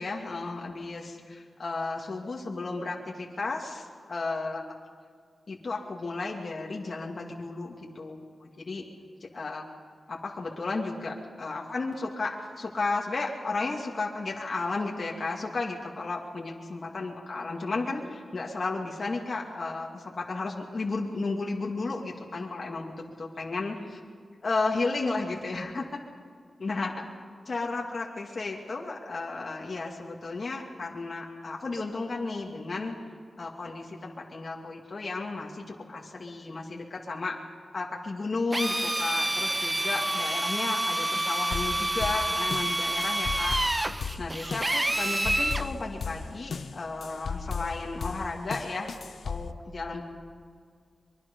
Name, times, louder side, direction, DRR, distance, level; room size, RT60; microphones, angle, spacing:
voice 1, 0.0-4.6 5.5-8.8 9.2-9.6 10.1-24.0 24.4-26.0 26.6-27.1 27.5-32.9 33.4-37.4 37.7-43.8 44.2-49.0 49.2-50.1, left 3 dB, 50° left, -1 dB, 2.5 m, -33 dB
Drill, 38.5-45.7, right 1 dB, 20° right, 1.0 m, -28 dB
sound 1, 41.5-49.5, left 5 dB, 80° left, 0.9 m, -36 dB
24.5 x 23.0 x 5.5 m, 2.1 s
wide cardioid pair, 85°, 0 cm